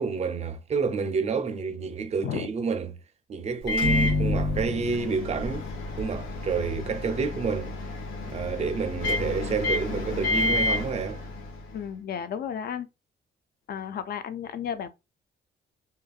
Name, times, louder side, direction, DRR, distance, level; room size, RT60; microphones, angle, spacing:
voice 1, 0.0-2.9 3.3-5.7 6.0-7.8 8.3-11.2, right 5 dB, 35° right, 0.5 m, -29 dB
Microwave oven, 3.6-11.8, left 2 dB, 85° left, 1.0 m, -29 dB
voice 2, 11.7-12.9 13.7-14.9, left 8 dB, 50° left, 0.4 m, -33 dB
2.8 x 2.5 x 2.3 m
cardioid pair, 90°, 20 cm